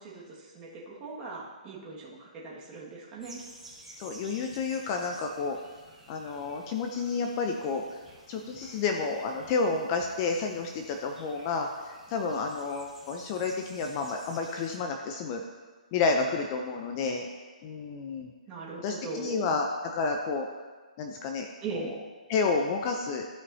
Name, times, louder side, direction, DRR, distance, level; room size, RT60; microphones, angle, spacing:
voice 1, 0.0-3.4 18.5-19.6 21.6-21.9, right 3 dB, 20° right, -5 dB, 1.8 m, -39 dB
sound 1, 3.2-14.8, right 1 dB, 5° right, 1.5 m, -52 dB
voice 2, 4.0-5.6 6.1-7.8 8.3-15.4 15.9-17.3 17.6-18.3 18.8-20.5 21.0-21.5 21.7-21.9 22.3-23.3, left 4 dB, 25° left, 3 dB, 0.5 m, -30 dB
15.0 x 5.4 x 2.8 m, 1.4 s
hypercardioid pair, 160°, 4 cm